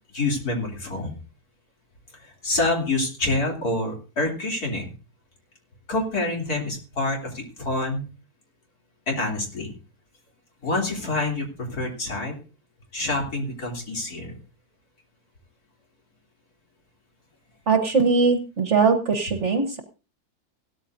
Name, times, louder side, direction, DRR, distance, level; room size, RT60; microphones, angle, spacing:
voice 1, 0.1-1.2 2.4-4.9 5.9-8.0 9.1-9.7 10.6-12.3 12.9-14.3, left 2 dB, 65° left, 0 dB, 3.7 m, -27 dB
voice 2, 17.7-19.8, right 4 dB, 50° right, 6 dB, 1.5 m, -21 dB
17.0 x 13.0 x 2.7 m, 0.33 s
omnidirectional pair, 1.7 m